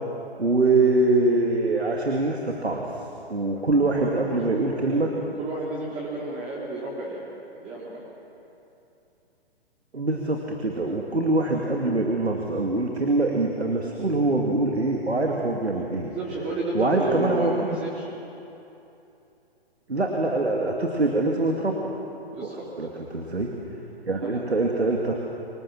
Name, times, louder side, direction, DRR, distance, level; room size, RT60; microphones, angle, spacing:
voice 1, 0.4-2.8 3.3-5.1 9.9-16.1 16.7-17.8 19.9-21.9 22.8-23.5 24.1-25.2, right 2 dB, 90° right, 0 dB, 2.6 m, -24 dB
voice 2, 3.8-7.2 7.5-8.0 16.0-18.1 22.3-22.7 24.1-24.4, right 2 dB, 20° right, -6 dB, 3.9 m, -32 dB
26.0 x 19.5 x 7.5 m, 2.9 s
figure-of-eight pair, 130°, 32 cm